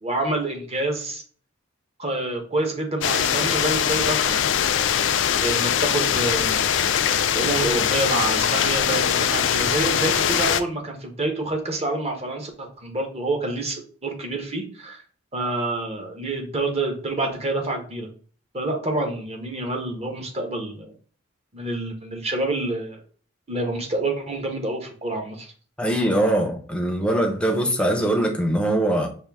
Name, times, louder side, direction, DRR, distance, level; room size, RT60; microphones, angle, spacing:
voice 1, 0.0-1.2 2.0-4.7 5.4-6.6 7.3-15.0 15.3-18.1 18.5-20.9 21.5-23.0 23.5-25.5, right 2 dB, 30° right, 0.9 m, -27 dB
sound 1, 3.0-10.6, left 8 dB, 60° left, 0.3 m, -22 dB
voice 2, 25.8-29.1, right 1 dB, 5° left, 0.6 m, -22 dB
5.4 x 2.7 x 3.4 m
head